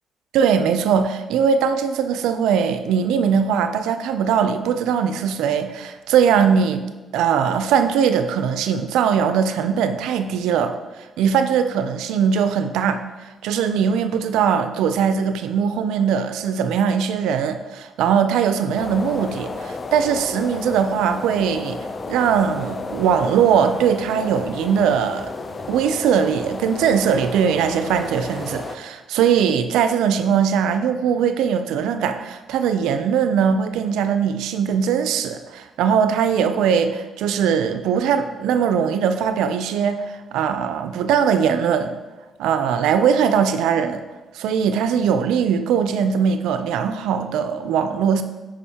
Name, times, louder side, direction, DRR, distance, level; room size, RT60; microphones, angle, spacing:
voice 1, 0.3-6.8 7.1-10.8 11.2-13.0 13.4-21.8 22.1-25.3 25.7-40.0 40.3-41.9 42.4-44.0 44.3-48.2, right 7 dB, 90° right, 9 dB, 0.4 m, -20 dB
sound 1, 18.8-28.8, left 3 dB, 35° left, 0.4 m, -32 dB
9.9 x 5.0 x 2.8 m, 1.2 s
cardioid pair, 90°, 0 cm